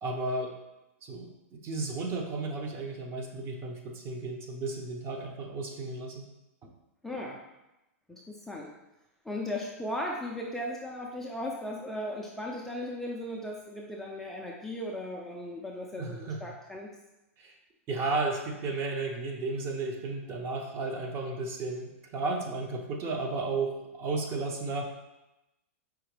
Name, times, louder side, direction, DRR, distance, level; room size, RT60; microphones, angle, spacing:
voice 1, 0.0-0.5 1.0-1.3 1.6-6.2 16.0-16.4 17.4-17.5 17.9-24.9, right 3 dB, 30° right, 3 dB, 0.7 m, -33 dB
voice 2, 7.0-7.4 8.1-8.7 9.2-16.9, left 1 dB, 5° left, -2 dB, 0.4 m, -37 dB
4.8 x 2.8 x 3.1 m, 0.95 s
hypercardioid pair, 125°, 8 cm